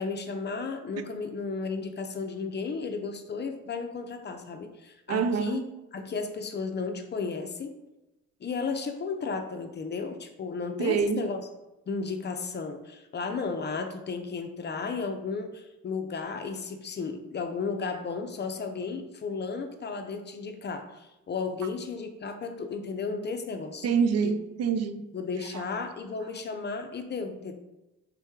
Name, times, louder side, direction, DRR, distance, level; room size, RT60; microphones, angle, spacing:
voice 1, 0.0-5.6 5.9-7.8 8.4-11.4 11.9-23.9 24.2-24.3 25.1-27.5, left 4 dB, 35° left, 0.5 m, -34 dB
voice 2, 5.1-5.7 10.8-11.2 23.8-25.0 25.5-25.6, right 6 dB, 55° right, 0.4 m, -26 dB
3.7 x 3.0 x 3.5 m
cardioid pair, 90°, 30 cm